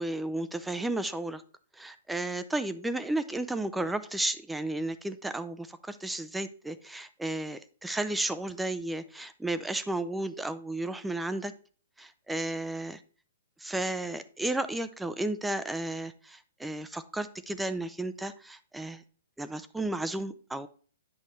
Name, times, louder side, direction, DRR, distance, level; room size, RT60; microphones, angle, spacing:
voice 1, 0.0-1.4 1.7-11.5 12.0-13.0 13.6-19.0 19.4-20.7, right 2 dB, 5° right, 12 dB, 0.5 m, -33 dB
8.4 x 6.3 x 3.1 m, 0.41 s
hypercardioid pair, 120°, 0 cm